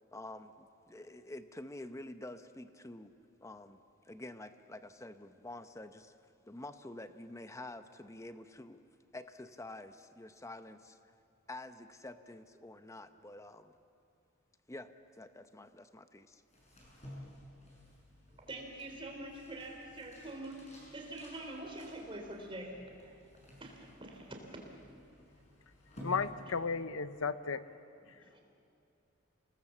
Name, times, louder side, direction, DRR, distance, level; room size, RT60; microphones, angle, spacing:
voice 1, 0.1-3.1 3.4-6.1 6.5-8.8 9.1-11.0 11.5-13.7 14.7-16.4, left 1 dB, 15° left, 9 dB, 0.8 m, -48 dB
sound 1, 16.4-27.0, equal, 30° left, 6.8 m, -54 dB
voice 2, 18.5-20.6 20.9-22.8 23.6-24.6 28.0-28.4, right 1 dB, 25° right, 1 dB, 3.7 m, -45 dB
voice 3, 26.0-27.6, left 5 dB, 70° left, 13 dB, 0.8 m, -34 dB
28.5 x 19.5 x 7.3 m, 2.7 s
head